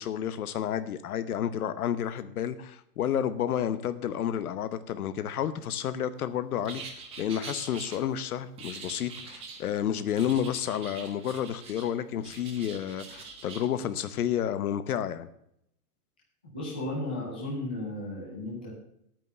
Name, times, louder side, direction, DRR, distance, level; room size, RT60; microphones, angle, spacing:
voice 1, 0.0-15.3, left 9 dB, 65° left, 12 dB, 1.0 m, -31 dB
sound 1, 6.6-8.0 8.6-9.6 10.2-11.9 12.2-13.7, right 5 dB, 10° right, 1.1 m, -44 dB
voice 2, 16.5-18.7, left 1 dB, 5° left, -6 dB, 0.4 m, -34 dB
9.6 x 9.1 x 6.6 m, 0.75 s
supercardioid pair, 175°, 46 cm